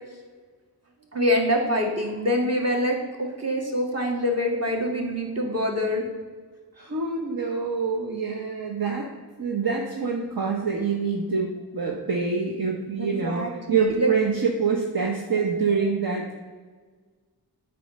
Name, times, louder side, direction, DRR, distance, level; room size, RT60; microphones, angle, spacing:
voice 1, 1.1-6.0 13.0-14.2 15.7-15.9, equal, 40° right, 0 dB, 2.0 m, -25 dB
voice 2, 6.8-9.1 9.4-11.5 11.7-16.3, right 5 dB, 60° right, 0 dB, 1.0 m, -26 dB
8.3 x 4.7 x 6.5 m, 1.5 s
wide cardioid pair, 70°, 40 cm